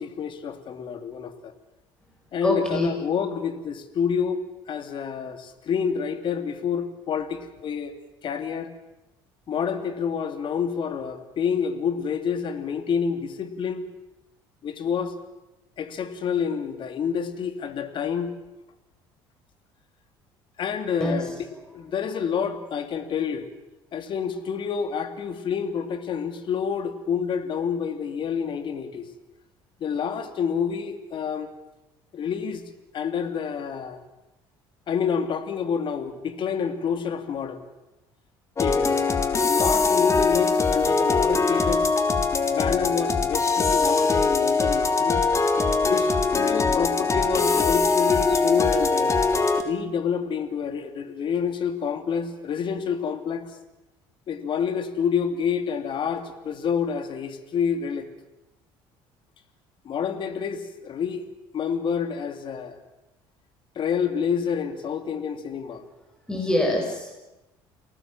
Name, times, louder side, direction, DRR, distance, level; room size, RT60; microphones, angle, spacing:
voice 1, 0.0-1.5 2.3-7.9 8.2-8.7 9.5-13.9 14.6-15.1 15.8-18.3 20.6-21.3 21.7-23.5 23.9-29.1 29.8-31.5 32.1-32.6 32.9-34.0 34.9-37.6 38.6-39.0 39.4-41.9 42.5-45.2 45.8-49.2 49.6-53.5 54.3-58.1 59.8-61.2 61.5-62.8 63.7-65.8, left 7 dB, 50° left, 9 dB, 2.9 m, -28 dB
voice 2, 2.4-2.9 21.0-21.3 66.3-67.2, left 1 dB, 5° left, 0 dB, 7.6 m, -25 dB
sound 1, 38.6-49.6, left 4 dB, 30° left, 3.3 m, -22 dB
29.5 x 19.0 x 7.5 m, 1.0 s
supercardioid pair, 90°, 11 cm